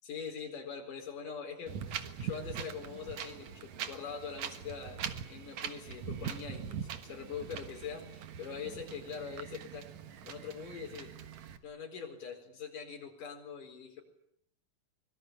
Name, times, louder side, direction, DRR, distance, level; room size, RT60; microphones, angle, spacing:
voice 1, 0.0-9.9 10.2-11.1 11.6-14.0, left 6 dB, 80° left, 3 dB, 6.1 m, -43 dB
Wind, 1.7-11.6, right 8 dB, 65° right, 2.7 m, -42 dB
25.0 x 23.0 x 10.0 m, 0.71 s
omnidirectional pair, 3.7 m